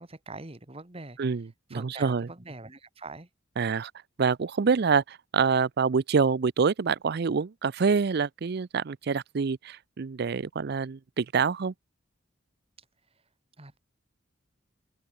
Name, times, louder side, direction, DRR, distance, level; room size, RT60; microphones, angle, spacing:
voice 1, 0.0-1.2 1.7-3.3 13.6-13.8, right 3 dB, 30° right, 1.7 m, -43 dB
voice 2, 1.2-2.3 3.6-3.9 4.2-11.7, right 5 dB, 55° right, 0.5 m, -26 dB
open air
head